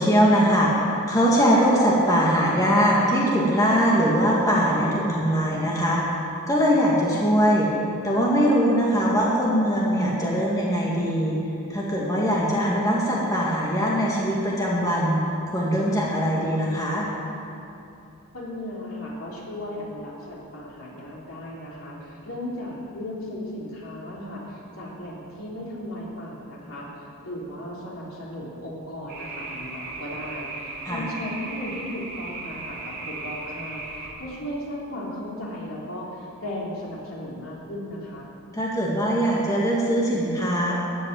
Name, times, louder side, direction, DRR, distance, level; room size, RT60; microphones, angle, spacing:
voice 1, 0.0-6.2 6.5-7.7 8.0-11.3 11.7-15.2 15.5-17.1 30.9-31.0 38.5-40.7, equal, 15° left, -5 dB, 2.1 m, -21 dB
voice 2, 18.3-26.9 27.2-38.3, left 1 dB, 70° left, -5 dB, 3.8 m, -36 dB
sound 1, 29.1-34.1, right 3 dB, 45° right, 2.9 m, -36 dB
14.0 x 8.6 x 9.7 m, 2.7 s
head